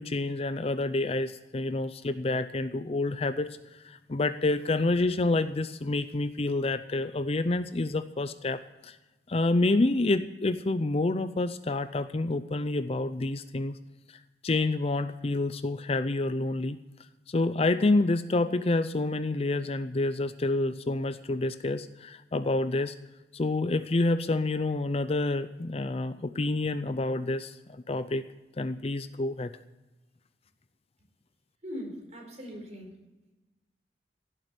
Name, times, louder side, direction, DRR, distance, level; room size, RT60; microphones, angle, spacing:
voice 1, 0.0-9.0 9.3-13.8 14.4-16.8 17.3-22.9 23.3-28.2 28.6-29.5, left 2 dB, 35° left, 12 dB, 0.5 m, -28 dB
voice 2, 31.6-32.9, equal, 40° right, 1 dB, 4.5 m, -40 dB
16.5 x 7.6 x 8.0 m, 1.1 s
head